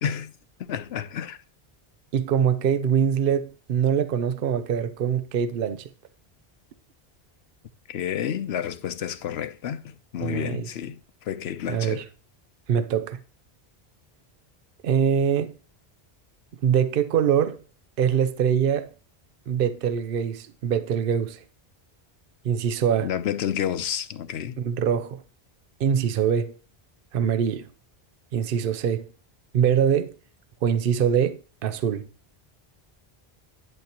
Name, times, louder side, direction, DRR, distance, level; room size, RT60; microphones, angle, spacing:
voice 1, 0.0-0.3 0.6-1.4 7.9-12.0 23.0-24.6, left 9 dB, 85° left, 0.9 m, -30 dB
voice 2, 2.1-5.9 10.2-10.7 11.7-12.0 12.7-13.2 14.8-15.6 16.6-17.6 18.0-18.9 19.5-21.4 22.4-23.1 24.6-25.2 25.8-26.5 27.1-27.7 28.3-29.1 29.5-30.1 30.6-32.1, right 8 dB, 65° right, 0.8 m, -23 dB
11.0 x 7.3 x 3.0 m
omnidirectional pair, 1.0 m